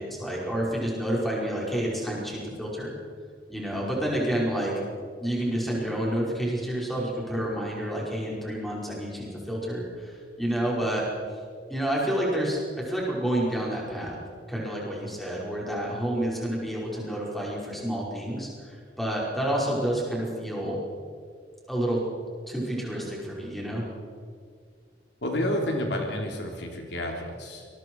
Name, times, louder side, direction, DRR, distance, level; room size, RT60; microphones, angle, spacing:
voice 1, 0.0-2.9 3.5-4.7 5.2-11.0 11.7-12.6 12.9-14.2 14.5-20.8 21.7-22.0 22.5-23.8, right 1 dB, ahead, -4 dB, 5.4 m, -29 dB
voice 2, 25.2-27.7, left 1 dB, 75° left, 1 dB, 3.4 m, -30 dB
26.0 x 22.0 x 4.8 m, 2.1 s
head